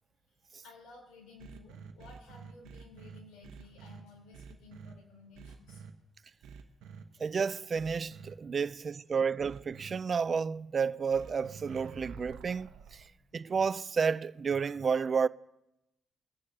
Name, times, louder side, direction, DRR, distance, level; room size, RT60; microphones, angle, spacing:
voice 1, 0.6-5.8 8.8-8.9 13.2-13.3, left 4 dB, 90° left, 3.9 m, -55 dB
sound 1, 1.4-4.0 4.3-4.9 5.3-5.9 6.4-7.0 7.7-8.3 9.4-9.9 11.1-13.1, right 6 dB, 90° right, 1.0 m, -48 dB
voice 2, 7.2-12.7 13.3-15.3, right 6 dB, 40° right, 0.3 m, -31 dB
23.5 x 9.9 x 2.8 m
cardioid pair, 90°, 0 cm